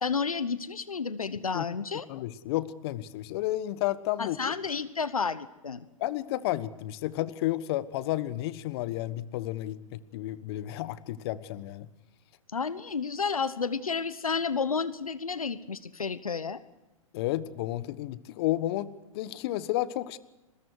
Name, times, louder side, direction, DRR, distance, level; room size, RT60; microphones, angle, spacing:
voice 1, 0.0-2.1 4.2-5.9 12.5-16.6, left 5 dB, 90° left, 15 dB, 1.1 m, -31 dB
voice 2, 2.1-4.4 6.0-11.9 17.1-20.2, left 15 dB, 45° left, 15 dB, 1.3 m, -32 dB
29.5 x 21.5 x 4.8 m, 1.0 s
hypercardioid pair, 115°, 18 cm